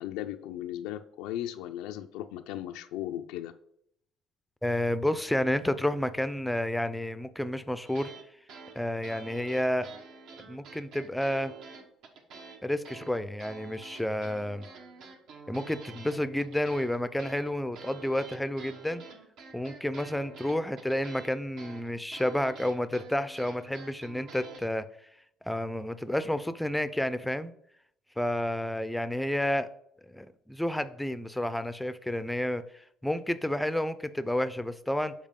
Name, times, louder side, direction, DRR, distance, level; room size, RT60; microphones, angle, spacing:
voice 1, 0.0-3.5, left 12 dB, 85° left, 7 dB, 0.4 m, -37 dB
voice 2, 4.6-8.1 8.8-9.9 10.5-11.5 12.6-14.7 15.5-19.0 19.5-24.9 25.5-27.5 28.2-29.7 30.1-35.1, left 1 dB, 5° left, 12 dB, 0.4 m, -30 dB
sound 1, 7.8-8.2 8.5-12.6 12.8-24.6, right 4 dB, 70° right, 1.1 m, -48 dB
7.3 x 4.2 x 3.7 m, 0.71 s
cardioid pair, 100°, 0 cm